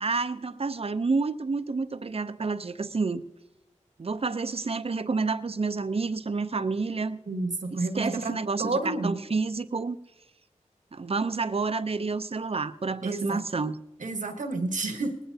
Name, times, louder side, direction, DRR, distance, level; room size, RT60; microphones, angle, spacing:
voice 1, 0.0-3.2 4.0-7.2 7.7-10.0 10.9-13.8, right 4 dB, 50° right, 12 dB, 0.6 m, -29 dB
voice 2, 7.3-8.3 8.6-9.2 13.0-13.4 14.0-15.2, right 2 dB, 80° right, 6 dB, 1.2 m, -30 dB
19.0 x 16.0 x 2.7 m, 0.97 s
cardioid pair, 40°, 13 cm